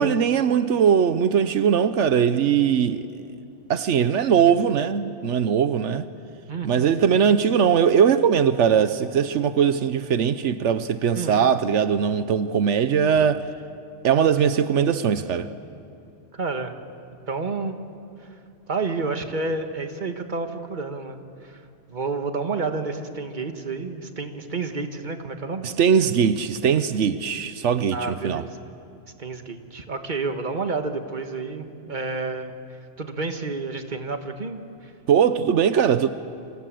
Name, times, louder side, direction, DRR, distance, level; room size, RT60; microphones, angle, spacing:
voice 1, 0.0-3.1 3.7-6.1 6.6-13.4 14.0-15.5 25.6-28.4 35.1-36.1, right 7 dB, 85° right, 1.1 m, -20 dB
voice 2, 6.5-6.9 11.1-11.4 16.3-16.7 17.3-17.8 18.7-21.6 21.9-25.7 27.9-28.6 29.2-32.5 33.0-34.6, right 3 dB, 45° right, 1.7 m, -30 dB
30.0 x 26.0 x 7.7 m
omnidirectional pair, 1.2 m